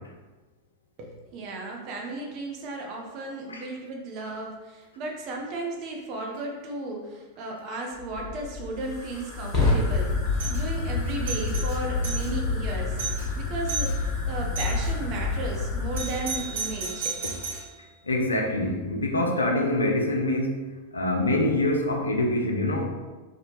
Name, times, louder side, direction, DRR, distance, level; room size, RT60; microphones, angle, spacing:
voice 1, 1.0-10.1 10.5-13.0 13.3-17.2, right 2 dB, 40° right, 0 dB, 0.5 m, -35 dB
Fire, 8.0-16.9, left 3 dB, 35° left, 0.9 m, -28 dB
Doorbell, 10.3-10.6 11.1-12.3 12.7-12.8 13.0-13.3 13.7-14.0 14.6-14.9 15.9-17.7, right 4 dB, 60° right, 1.0 m, -33 dB
voice 2, 18.0-20.6 20.9-22.9, left 1 dB, 75° left, 2 dB, 0.3 m, -25 dB
3.0 x 2.1 x 2.6 m, 1.3 s
figure-of-eight pair, 90°, 0 cm